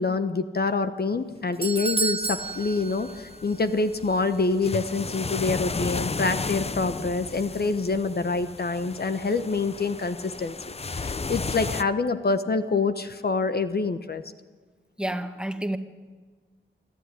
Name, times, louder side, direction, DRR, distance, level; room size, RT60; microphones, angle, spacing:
voice 1, 0.0-10.6 10.9-14.2, left 3 dB, 50° left, 10 dB, 1.1 m, -26 dB
Doorbell, 1.1-3.7 3.9-4.0 4.8-4.9, right 4 dB, 25° right, 1.1 m, -31 dB
sound 1, 2.2-11.8, left 4 dB, 30° left, 0.7 m, -34 dB
voice 2, 15.0-15.8, right 1 dB, 5° right, 7 dB, 1.7 m, -29 dB
25.5 x 13.0 x 9.8 m, 1.4 s
cardioid pair, 75°, 21 cm